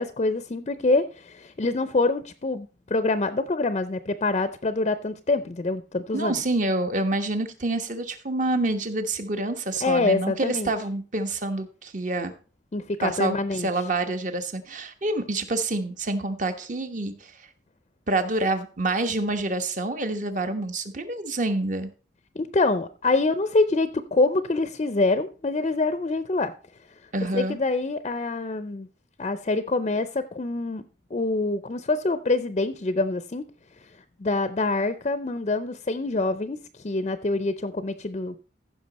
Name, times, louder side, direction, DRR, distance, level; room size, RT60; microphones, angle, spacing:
voice 1, 0.0-6.4 9.8-10.7 12.7-13.7 22.4-26.5 27.3-28.9 29.2-30.8 31.1-33.4 33.8-33.9 34.2-38.4, left 3 dB, 35° left, 0.5 m, -25 dB
voice 2, 6.1-12.3 13.0-17.3 18.1-21.9 27.1-27.6, right 2 dB, 45° right, 1.1 m, -27 dB
15.0 x 6.0 x 4.1 m
head